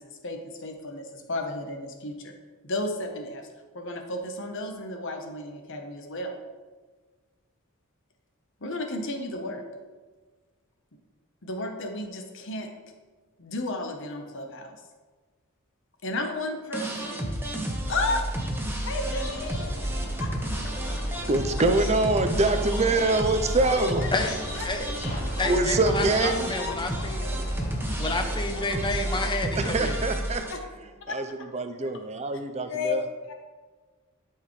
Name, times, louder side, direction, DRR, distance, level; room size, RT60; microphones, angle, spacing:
voice 1, 0.0-2.3 2.6-3.5 3.7-6.3 8.6-9.6 11.4-12.7 13.4-14.8 16.0-17.3 17.9-18.2 18.8-19.6 19.9-20.6 23.7-24.1 24.5-24.7 25.4-25.5 26.2-27.7 28.5-28.8 30.5-30.6 31.1-31.2 31.8-31.9 32.7-33.3, left 2 dB, 60° left, 4 dB, 1.0 m, -33 dB
sound 1, 16.7-30.5, right 1 dB, 10° right, 0.9 m, -31 dB
sound 2, 19.0-29.1, equal, 85° left, 2.0 m, -37 dB
voice 2, 21.3-24.1 25.4-26.5 29.6-30.5 31.1-31.2 31.5-33.0, right 2 dB, 30° right, 7 dB, 0.6 m, -24 dB
voice 3, 25.4-27.2 28.0-30.0, left 2 dB, 20° left, 6 dB, 0.7 m, -30 dB
11.5 x 4.7 x 3.2 m, 1.4 s
head